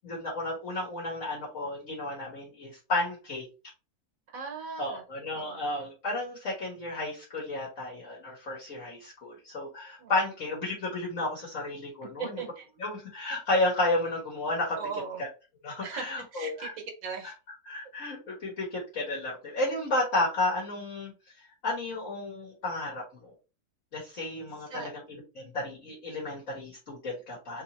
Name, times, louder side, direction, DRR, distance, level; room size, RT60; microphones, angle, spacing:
voice 1, 0.0-3.5 4.8-12.4 12.8-14.8 15.2-15.3 15.6-16.7 17.2-17.3 17.6-23.3 23.9-27.6, left 2 dB, 50° left, -3 dB, 1.7 m, -32 dB
voice 2, 4.3-5.0 5.3-5.6 10.0-10.1 12.0-12.6 14.8-15.2 15.8-17.3 24.7-24.9, right 5 dB, 60° right, 3 dB, 1.4 m, -38 dB
3.5 x 2.8 x 4.1 m, 0.31 s
omnidirectional pair, 1.8 m